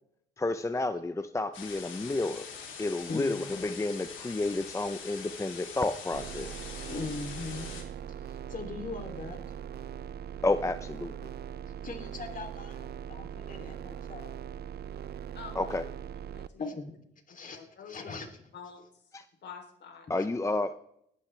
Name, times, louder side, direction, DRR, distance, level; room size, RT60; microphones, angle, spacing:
voice 1, 0.4-2.5 2.8-6.5 10.4-11.1 15.5-15.8 19.1-19.2 20.1-20.8, left 2 dB, 15° left, 11 dB, 0.6 m, -31 dB
sound 1, 1.5-7.8, left 6 dB, 80° left, 3.7 m, -44 dB
voice 2, 3.1-3.5 6.9-7.7 8.2-9.8 11.8-14.3 16.6-16.9 17.3-18.4 20.2-20.3, left 4 dB, 40° left, 4 dB, 3.0 m, -40 dB
sound 2, 6.1-16.5, right 9 dB, 55° right, 0.5 m, -41 dB
voice 3, 6.8-7.1 8.0-8.1 15.3-15.8 16.3-16.8 17.3-18.1 18.5-18.8 19.4-20.1, left 6 dB, 60° left, 3 dB, 3.4 m, -48 dB
19.5 x 12.0 x 3.3 m, 0.72 s
cardioid pair, 90°, 20 cm